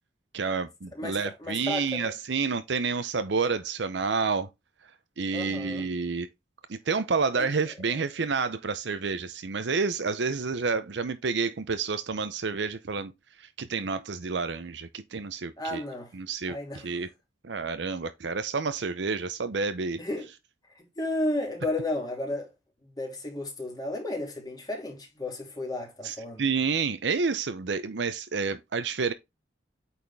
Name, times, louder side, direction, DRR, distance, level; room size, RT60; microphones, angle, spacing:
voice 1, 0.3-4.5 5.2-6.3 6.7-13.1 13.4-15.8 16.1-17.1 17.4-20.0 26.0-29.1, right 4 dB, 70° right, 0.6 m, -29 dB
voice 2, 0.9-2.1 5.3-5.8 7.4-7.5 15.6-16.1 16.5-16.9 20.0-20.3 20.7-22.5 22.8-26.4, left 1 dB, 20° left, 2.6 m, -33 dB
8.6 x 4.2 x 3.4 m
head